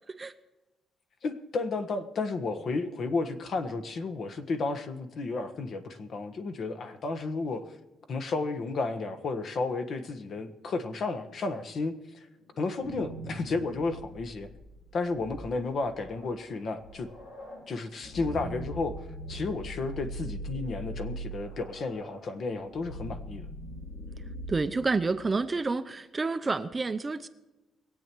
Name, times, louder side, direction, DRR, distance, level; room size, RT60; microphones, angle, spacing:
voice 1, 1.2-7.7 8.1-12.3 12.6-14.5 14.9-17.1 17.7-19.0 19.3-23.5, left 3 dB, 50° left, 9 dB, 1.4 m, -32 dB
sound 1, 12.6-25.4, right 1 dB, 80° left, 4.0 m, -42 dB
voice 2, 24.5-27.3, right 3 dB, 20° right, 10 dB, 0.6 m, -29 dB
22.0 x 8.5 x 4.6 m, 1.1 s
cardioid pair, 135°, 0 cm